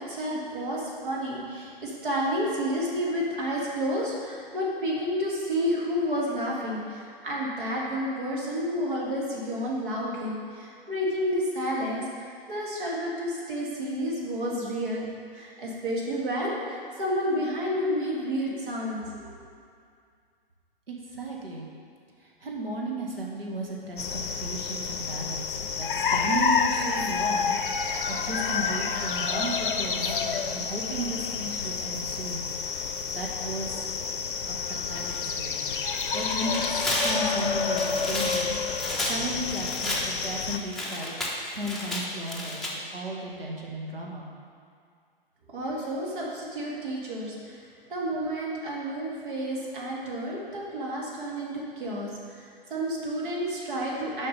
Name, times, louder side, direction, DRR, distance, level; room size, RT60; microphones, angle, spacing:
voice 1, 0.0-19.3 45.5-47.6 47.9-54.3, equal, 60° right, -4 dB, 1.9 m, -30 dB
voice 2, 20.9-21.7 22.4-27.5 28.1-32.5 33.1-33.9 34.8-35.7 36.1-38.6 39.0-41.1 41.5-44.3, right 1 dB, 75° right, -2 dB, 1.6 m, -35 dB
sound 1, 24.0-40.6, left 5 dB, 60° left, 0.6 m, -29 dB
Tearing, 35.8-42.7, left 1 dB, ahead, 0.7 m, -32 dB
6.7 x 5.1 x 5.3 m, 2.3 s
figure-of-eight pair, 110°, 29 cm